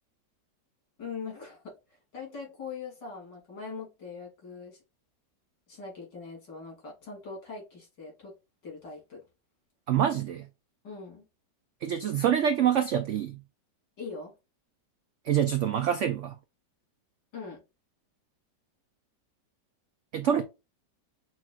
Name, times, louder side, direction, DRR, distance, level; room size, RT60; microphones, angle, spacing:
voice 1, 1.0-1.7 2.1-4.8 5.7-8.3 8.6-9.2 10.8-11.2 14.0-14.3 17.3-17.6, left 5 dB, 80° left, 3.1 m, -41 dB
voice 2, 9.9-10.5 11.8-13.4 15.2-16.4 20.1-20.4, right 9 dB, 85° right, 0.6 m, -26 dB
5.8 x 3.0 x 2.3 m
omnidirectional pair, 1.9 m